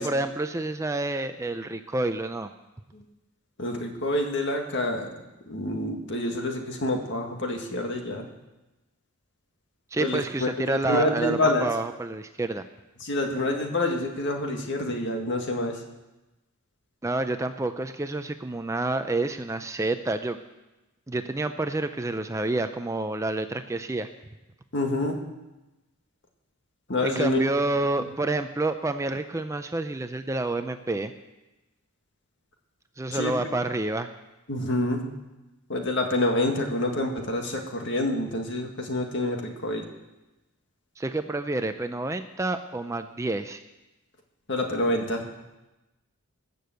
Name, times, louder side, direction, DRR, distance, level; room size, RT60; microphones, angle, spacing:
voice 1, 0.0-2.5 9.9-12.6 17.0-20.4 21.1-24.1 27.0-31.1 33.0-34.1 41.0-43.6, right 2 dB, 15° right, 9 dB, 0.4 m, -28 dB
voice 2, 3.6-5.1 5.5-8.2 10.0-11.7 13.0-15.8 24.7-25.2 26.9-27.4 33.1-33.3 34.5-35.0 35.7-39.9 44.5-45.3, left 1 dB, 55° left, 3 dB, 2.0 m, -27 dB
20.0 x 7.0 x 7.8 m, 1.0 s
head